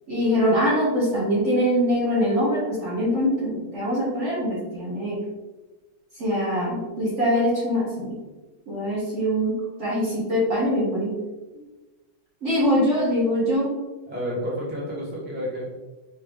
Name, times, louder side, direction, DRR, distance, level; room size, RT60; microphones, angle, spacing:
voice 1, 0.1-5.2 6.2-8.2 8.7-9.5 9.8-11.1 12.4-13.7, equal, 45° right, -6 dB, 1.1 m, -23 dB
voice 2, 14.1-15.7, equal, 10° right, -6 dB, 0.5 m, -30 dB
4.4 x 3.0 x 3.4 m, 1.2 s
omnidirectional pair, 2.4 m